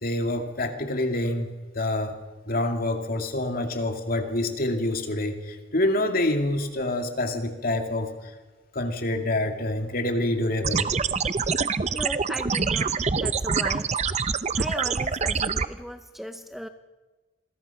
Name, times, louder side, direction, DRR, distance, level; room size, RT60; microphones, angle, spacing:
voice 1, 0.0-1.5 1.7-2.1 2.4-8.1 8.7-10.9, left 1 dB, 50° left, 5 dB, 2.5 m, -26 dB
sound 1, 10.6-15.7, right 5 dB, 35° right, 0.7 m, -25 dB
voice 2, 11.9-14.0 14.6-16.7, equal, ahead, 8 dB, 0.6 m, -36 dB
27.0 x 22.0 x 5.9 m, 1.2 s
head